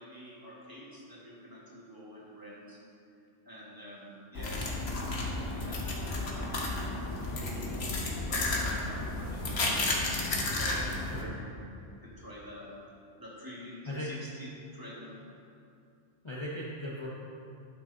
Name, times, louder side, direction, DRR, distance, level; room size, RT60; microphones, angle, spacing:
voice 1, 0.0-2.8 3.4-5.1 5.3-6.7 7.1-10.0 10.5-12.7 13.2-15.2, left 1 dB, 20° right, -6 dB, 1.4 m, -47 dB
sound 1, 4.4-11.2, left 2 dB, 70° left, 1.3 m, -32 dB
voice 2, 16.2-17.1, left 1 dB, 30° left, -6 dB, 0.8 m, -37 dB
11.5 x 6.0 x 2.7 m, 2.5 s
omnidirectional pair, 1.1 m